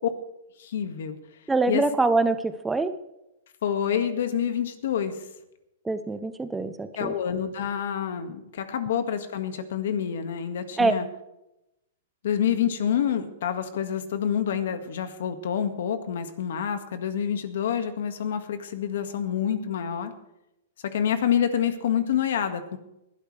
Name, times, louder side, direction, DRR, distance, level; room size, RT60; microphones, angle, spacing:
voice 1, 0.6-1.2 1.7-1.8 3.6-5.2 7.0-11.1 12.2-20.1 20.8-22.8, left 8 dB, 70° left, 8 dB, 1.8 m, -27 dB
voice 2, 1.5-2.9 5.8-7.1 10.8-10.9, right 3 dB, 5° right, 11 dB, 0.6 m, -24 dB
20.5 x 11.5 x 3.3 m, 0.88 s
hypercardioid pair, 150°, 0 cm